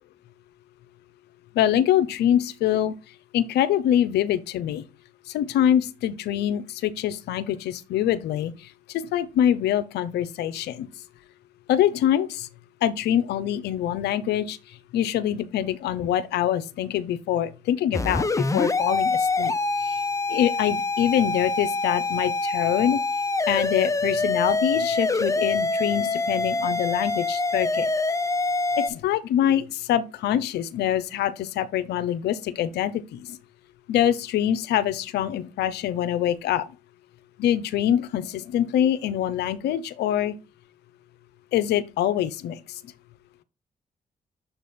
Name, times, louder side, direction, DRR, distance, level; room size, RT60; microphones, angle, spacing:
voice 1, 1.5-3.0 3.3-4.8 5.3-10.9 11.7-12.5 12.8-14.6 14.9-19.5 19.8-20.0 20.3-23.0 23.5-27.9 28.8-33.4 33.9-36.6 37.4-40.4 41.5-42.8, left 11 dB, 85° left, 0.6 m, -24 dB
sound 1, 17.9-28.9, left 3 dB, 20° left, 0.7 m, -25 dB
7.1 x 3.4 x 4.2 m
supercardioid pair, 55°, 17 cm